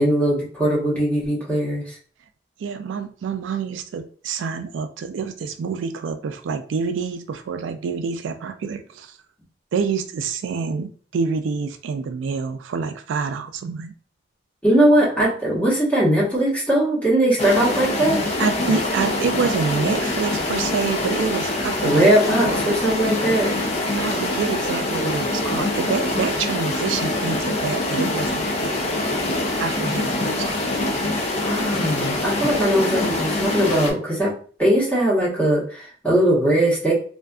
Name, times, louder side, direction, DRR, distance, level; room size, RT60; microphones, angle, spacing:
voice 1, 0.0-2.0 14.6-18.2 21.8-23.5 31.4-34.3 34.6-36.9, right 1 dB, 10° left, -6 dB, 1.0 m, -20 dB
voice 2, 2.6-9.1 9.7-13.9 18.4-22.1 22.5-22.8 23.9-28.9 29.6-30.6, right 5 dB, 90° right, 9 dB, 0.3 m, -27 dB
sound 1, 17.4-33.9, left 2 dB, 35° left, 0.4 m, -24 dB
2.5 x 2.4 x 2.3 m, 0.43 s
head